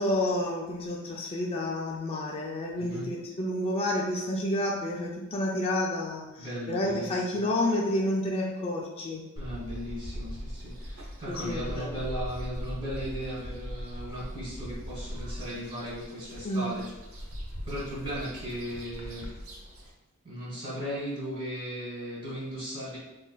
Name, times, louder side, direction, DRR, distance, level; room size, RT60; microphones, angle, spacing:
voice 1, 0.0-9.2 11.3-12.0 16.4-16.7, left 1 dB, 25° left, -2 dB, 0.3 m, -30 dB
voice 2, 2.7-3.1 6.4-7.4 9.4-16.9 17.1-17.3 17.6-19.2 20.2-23.0, equal, 25° right, -9 dB, 1.5 m, -37 dB
sound 1, 9.4-19.9, equal, 85° right, 0.7 m, -40 dB
3.9 x 3.0 x 2.2 m, 1.0 s
head